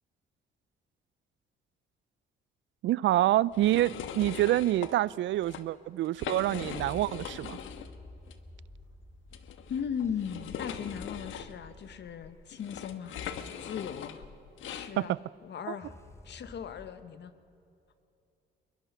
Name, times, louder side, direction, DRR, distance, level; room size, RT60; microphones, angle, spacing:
voice 1, 2.8-7.6 15.0-15.2 15.7-15.8, right 14 dB, 70° right, 0.4 m, -27 dB
sound 1, 3.5-4.9 5.3-5.6 6.0-7.9 8.3-8.4 9.3-14.9, left 8 dB, 80° left, 1.3 m, -41 dB
sound 2, 6.4-14.2 15.8-16.9, left 1 dB, 15° left, 2.6 m, -52 dB
voice 2, 9.7-13.2 13.6-14.2 14.7-15.2 15.4-15.9 16.2-17.3, left 7 dB, 60° left, 1.4 m, -37 dB
22.0 x 22.0 x 5.7 m
cardioid pair, 90°, 20 cm